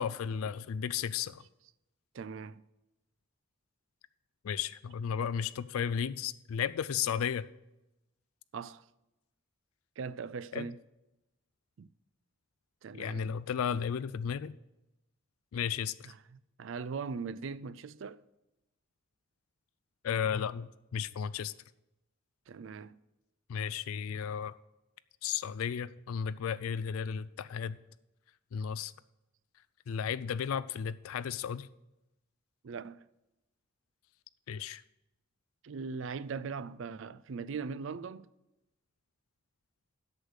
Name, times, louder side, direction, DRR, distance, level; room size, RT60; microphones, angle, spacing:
voice 1, 0.0-1.4 4.4-7.5 10.5-10.7 12.9-14.5 15.5-16.1 20.0-21.5 23.5-24.5 25.2-27.8 28.5-28.9 29.9-31.7 34.5-34.8, left 7 dB, 90° left, 0.4 m, -34 dB
voice 2, 2.1-2.6 8.5-8.8 10.0-10.8 11.8-11.9 12.8-13.3 16.1-18.2 22.5-23.0 32.6-33.0 35.6-38.3, right 5 dB, 65° right, 0.4 m, -40 dB
8.2 x 6.4 x 8.0 m
head